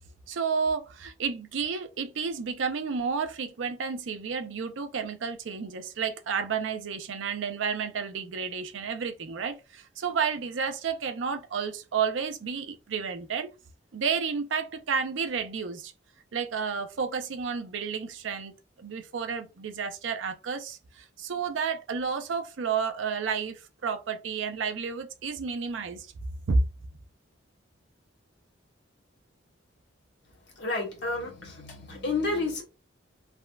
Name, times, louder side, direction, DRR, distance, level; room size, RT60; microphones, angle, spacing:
voice 1, 0.3-13.5 13.9-15.9 16.3-26.1 26.5-26.7, right 5 dB, 80° right, 0.5 m, -31 dB
voice 2, 30.5-32.6, left 3 dB, 60° left, 1.2 m, -31 dB
3.6 x 2.1 x 2.2 m
head